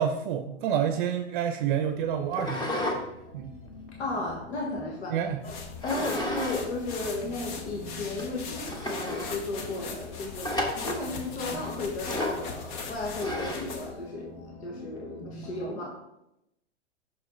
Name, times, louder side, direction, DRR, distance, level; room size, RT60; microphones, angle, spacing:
voice 1, 0.0-3.1 3.3-3.5 5.1-5.4, right 8 dB, 50° right, 8 dB, 0.6 m, -28 dB
sound 1, 1.2-15.7, left 2 dB, 30° left, 1.5 m, -47 dB
sound 2, 2.3-3.0 3.4-4.8 5.8-6.6 6.9-7.0 7.7-7.8 8.2-8.3 8.6-9.3 10.4-11.0 12.0-12.5 13.2-13.8, left 1 dB, 15° left, 1.1 m, -32 dB
voice 2, 4.0-16.0, left 2 dB, 75° left, -1 dB, 1.7 m, -35 dB
sound 3, 5.4-14.0, left 5 dB, 45° left, 1.3 m, -40 dB
6.4 x 6.0 x 3.9 m, 0.85 s
hypercardioid pair, 115°, 33 cm